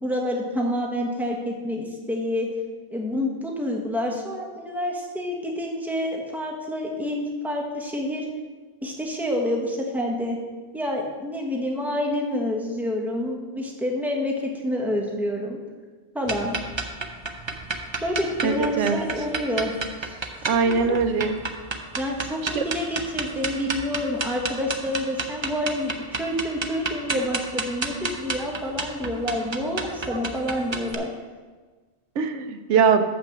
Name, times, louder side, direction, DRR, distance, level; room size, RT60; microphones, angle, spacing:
voice 1, 0.0-2.5 2.9-8.3 8.8-10.4 10.7-15.6 16.1-16.6 18.0-19.7 20.0-20.2 20.5-21.0 22.0-31.1, left 1 dB, ahead, 0 dB, 1.1 m, -28 dB
sound 1, 16.3-30.9, right 3 dB, 30° right, 0.5 m, -31 dB
voice 2, 18.4-19.0 20.5-21.4 22.6-22.7 32.2-33.0, right 6 dB, 90° right, 9 dB, 1.0 m, -21 dB
6.7 x 5.9 x 7.3 m, 1.4 s
omnidirectional pair, 1.2 m